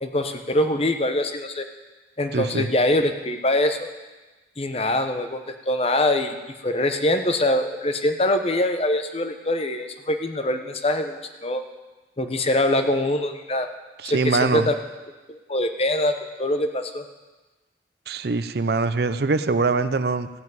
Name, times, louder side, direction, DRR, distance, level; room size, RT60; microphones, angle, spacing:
voice 1, 0.0-1.7 2.2-3.9 4.6-6.4 6.6-11.6 12.2-13.7 14.0-14.7 15.3-17.0, left 1 dB, 35° left, 7 dB, 0.9 m, -23 dB
voice 2, 2.3-2.7 14.0-14.7 18.1-20.3, right 3 dB, 60° right, 12 dB, 0.5 m, -23 dB
15.5 x 5.9 x 9.2 m, 1.2 s
head